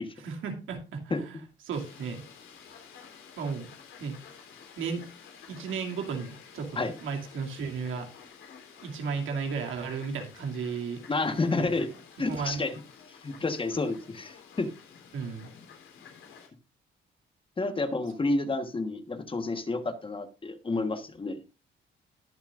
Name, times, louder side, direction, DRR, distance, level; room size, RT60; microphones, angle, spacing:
voice 1, 0.2-2.2 3.4-3.7 4.0-4.2 4.8-5.0 5.5-8.1 8.8-11.0 11.5-11.7 12.3-12.6 15.1-15.5, right 5 dB, 90° right, 2 dB, 2.6 m, -34 dB
Fowl, 1.7-16.5, left 6 dB, 85° left, 3.5 m, -51 dB
voice 2, 11.1-11.9 12.2-12.7 13.2-14.7 17.6-21.4, left 3 dB, 25° left, 9 dB, 1.3 m, -30 dB
20.5 x 7.2 x 2.5 m, 0.31 s
cardioid pair, 110°, 20 cm